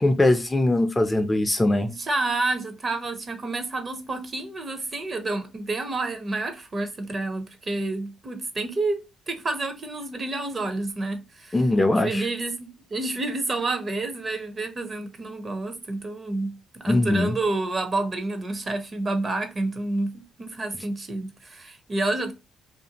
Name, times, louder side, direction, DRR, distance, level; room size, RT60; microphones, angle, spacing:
voice 1, 0.0-1.9 11.5-12.2 16.9-17.3, left 2 dB, 15° left, 0.3 m, -21 dB
voice 2, 1.8-9.0 9.3-11.6 11.9-22.3, right 2 dB, 35° right, 0.6 m, -29 dB
2.5 x 2.3 x 2.8 m
cardioid pair, 90°, 0 cm